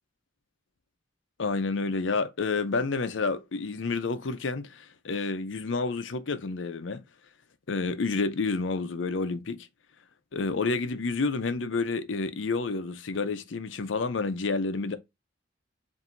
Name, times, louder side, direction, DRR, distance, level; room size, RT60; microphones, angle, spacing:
voice 1, 1.4-7.0 7.7-9.7 10.3-15.0, left 3 dB, 85° left, 0.6 m, -29 dB
7.1 x 2.7 x 2.5 m
head